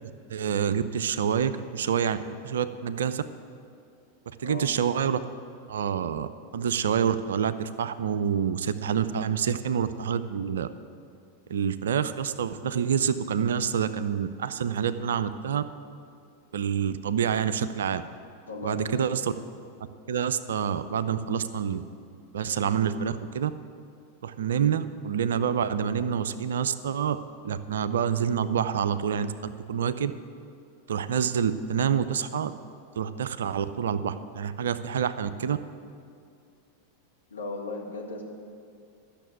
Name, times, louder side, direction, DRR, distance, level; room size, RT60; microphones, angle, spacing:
voice 1, 0.3-2.2 2.4-3.2 4.4-5.2 5.7-10.7 11.5-15.6 16.5-18.0 18.6-19.3 20.1-21.8 22.3-23.5 24.2-27.2 27.4-30.1 30.9-32.5 33.0-35.6, right 8 dB, 65° right, 13 dB, 0.5 m, -27 dB
voice 2, 18.5-19.2 37.3-38.2, left 3 dB, 70° left, 0 dB, 1.7 m, -36 dB
12.0 x 6.7 x 9.0 m, 2.4 s
figure-of-eight pair, 90°, 0 cm